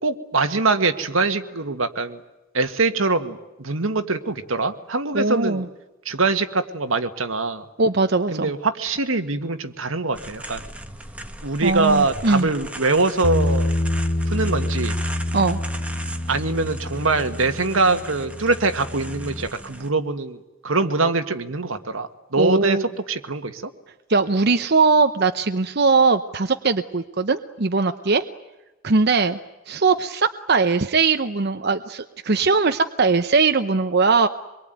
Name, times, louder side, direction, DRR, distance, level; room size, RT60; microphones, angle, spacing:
voice 1, 0.0-2.2 2.5-5.7 6.1-7.7 8.3-10.6 11.4-13.7 14.3-15.0 16.3-23.7, right 3 dB, 85° right, 8 dB, 1.8 m, -23 dB
voice 2, 5.1-5.7 7.8-8.5 11.6-12.5 15.3-15.6 22.4-22.9 24.1-28.2 28.8-29.4 29.7-34.3, right 4 dB, 55° right, 8 dB, 0.9 m, -20 dB
sound 1, 10.1-19.9, right 1 dB, 5° right, 1.3 m, -38 dB
Bass guitar, 13.2-19.5, left 1 dB, 35° left, 1.5 m, -26 dB
25.5 x 23.0 x 9.3 m, 1.0 s
head